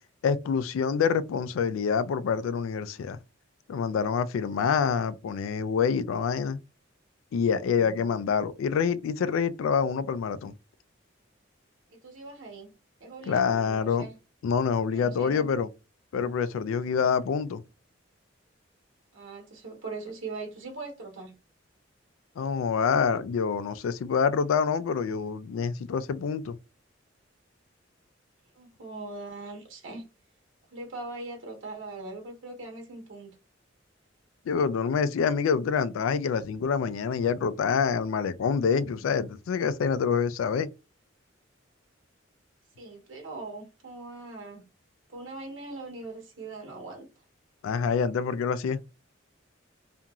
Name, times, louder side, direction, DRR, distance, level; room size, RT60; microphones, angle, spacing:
voice 1, 0.2-3.2 3.7-6.6 7.3-10.5 13.3-14.1 14.4-15.7 16.1-17.6 22.4-26.6 34.5-40.7 47.6-48.8, left 6 dB, 90° left, 0.3 m, -26 dB
voice 2, 11.9-12.7 13.0-14.1 14.9-15.5 19.1-21.3 28.6-30.1 30.7-33.3 42.8-44.6 45.1-47.0, right 3 dB, 75° right, 1.1 m, -41 dB
2.9 x 2.5 x 2.3 m
head